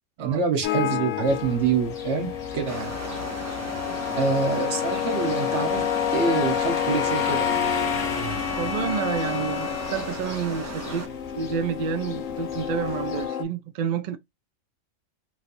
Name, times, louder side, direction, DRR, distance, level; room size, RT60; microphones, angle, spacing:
voice 1, 0.2-2.9 4.2-5.8 6.1-7.5, right 5 dB, 60° right, 1.2 m, -26 dB
sound 1, 0.6-13.4, left 10 dB, 80° left, 0.9 m, -29 dB
sound 2, 1.3-13.3, left 2 dB, 35° left, 0.7 m, -38 dB
sound 3, 2.7-11.1, right 1 dB, 20° right, 0.4 m, -36 dB
voice 2, 8.6-14.2, right 7 dB, 80° right, 0.4 m, -29 dB
3.1 x 2.7 x 2.4 m
omnidirectional pair, 1.3 m